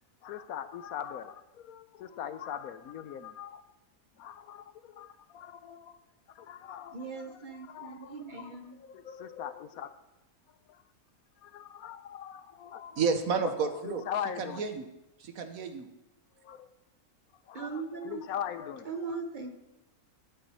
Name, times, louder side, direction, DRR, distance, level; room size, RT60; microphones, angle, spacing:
voice 1, 0.2-3.6 4.2-6.0 6.3-7.0 7.7-8.5 8.8-9.9 10.7-10.8 11.4-13.0 13.4-14.7 16.4-16.7 17.4-18.9, left 9 dB, 75° left, 12 dB, 1.1 m, -41 dB
voice 2, 6.9-8.8 17.5-18.3 18.8-19.5, right 4 dB, 35° right, 5 dB, 1.0 m, -39 dB
voice 3, 13.0-14.0 14.6-14.9 15.2-15.9, right 5 dB, 65° right, 7 dB, 1.4 m, -30 dB
11.5 x 9.1 x 4.3 m, 0.92 s
omnidirectional pair, 1.6 m